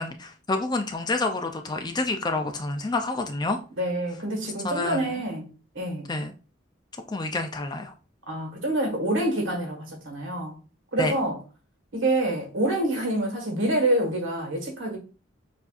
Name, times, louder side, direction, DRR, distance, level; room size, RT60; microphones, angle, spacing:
voice 1, 0.0-3.6 4.6-5.2 6.1-6.3 7.1-7.9 11.0-11.2, left 2 dB, 20° left, 0.4 m, -28 dB
voice 2, 3.8-6.1 8.3-10.6 10.9-11.4 11.9-15.0, right 1 dB, 85° right, 1.6 m, -27 dB
6.9 x 2.6 x 2.4 m
head